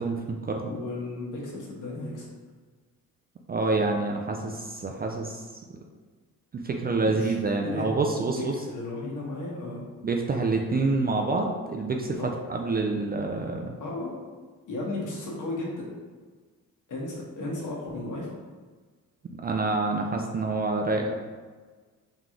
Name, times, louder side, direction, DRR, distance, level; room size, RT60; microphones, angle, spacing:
voice 1, 0.0-0.7 3.5-5.4 6.5-8.5 10.0-13.7 19.4-21.1, right 3 dB, 30° right, 2 dB, 0.3 m, -27 dB
voice 2, 0.6-2.3 7.0-7.9 8.3-9.8 12.2-12.3 13.8-14.1 14.7-15.9 16.9-18.3, left 2 dB, 60° left, -3 dB, 1.3 m, -34 dB
3.8 x 3.0 x 3.7 m, 1.4 s
cardioid pair, 110°, 35 cm